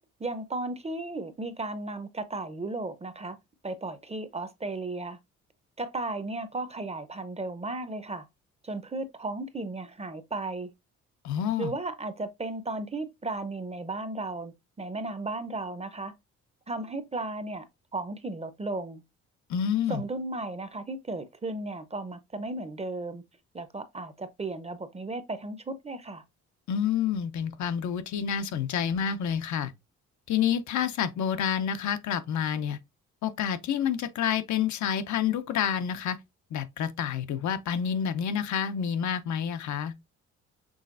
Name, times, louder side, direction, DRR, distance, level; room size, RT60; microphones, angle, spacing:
voice 1, 0.2-3.4 3.6-5.2 5.8-8.3 8.6-10.7 11.6-16.1 16.7-17.7 17.9-19.0 19.9-23.2 23.5-26.2, right 2 dB, 20° right, 0.7 m, -35 dB
voice 2, 11.2-11.7 19.5-20.0 26.7-29.7 30.3-32.8 33.2-36.2 36.5-39.9, left 8 dB, 70° left, 0.7 m, -28 dB
6.3 x 3.2 x 2.5 m
cardioid pair, 90°, 30 cm